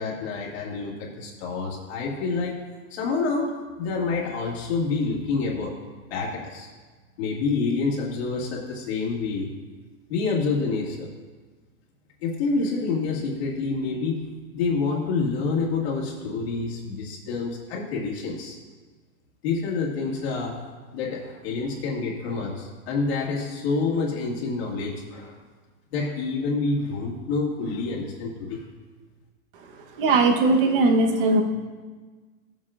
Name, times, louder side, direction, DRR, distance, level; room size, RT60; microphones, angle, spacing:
voice 1, 0.0-2.6 2.9-5.8 6.1-6.7 7.2-9.5 10.1-11.1 12.2-18.6 19.4-20.6 20.9-25.4 25.9-28.7, left 4 dB, 45° left, -3 dB, 2.0 m, -27 dB
voice 2, 30.0-31.4, right 3 dB, 40° right, 3 dB, 1.1 m, -19 dB
16.0 x 7.6 x 2.5 m, 1.4 s
supercardioid pair, 170°, 43 cm